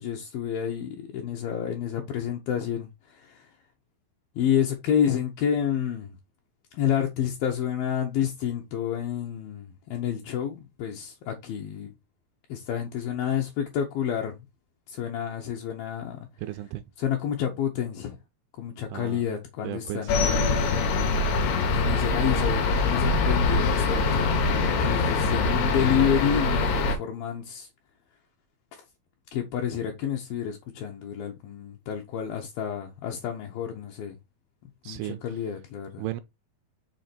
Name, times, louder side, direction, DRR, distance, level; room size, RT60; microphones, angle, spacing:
voice 1, 0.0-3.5 4.4-6.2 6.7-11.9 12.5-14.4 14.9-16.3 17.0-18.2 18.6-20.7 21.7-27.7 28.7-28.8 29.3-34.2 34.9-36.1, left 9 dB, 75° left, 2.4 m, -29 dB
voice 2, 16.4-16.8 18.9-19.4 19.6-20.2 34.8-35.2 36.0-36.2, right 14 dB, 80° right, 2.4 m, -35 dB
sound 1, 20.1-27.0, left 3 dB, 90° left, 3.2 m, -24 dB
6.5 x 3.7 x 4.2 m
omnidirectional pair, 4.7 m